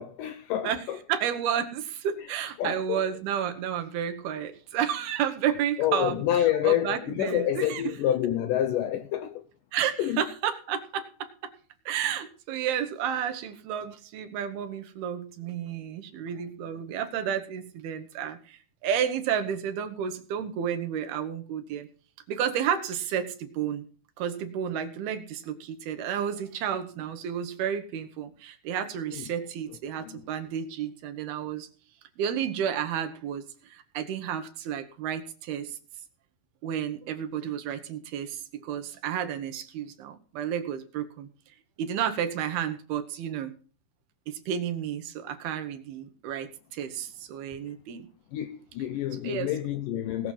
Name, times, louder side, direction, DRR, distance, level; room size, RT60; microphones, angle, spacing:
voice 1, 0.0-1.0 2.2-2.3 2.6-3.0 5.8-9.4 10.0-10.2 29.1-29.3 30.0-30.2 48.3-50.3, left 11 dB, 75° left, 2.0 m, -28 dB
voice 2, 1.1-6.2 6.6-7.8 9.7-11.5 11.9-21.9 22.3-23.9 24.2-31.7 32.2-35.8 36.6-41.3 41.8-43.5 44.3-48.1 49.2-49.5, right 9 dB, 80° right, 3.2 m, -31 dB
18.5 x 6.6 x 5.7 m
omnidirectional pair, 4.4 m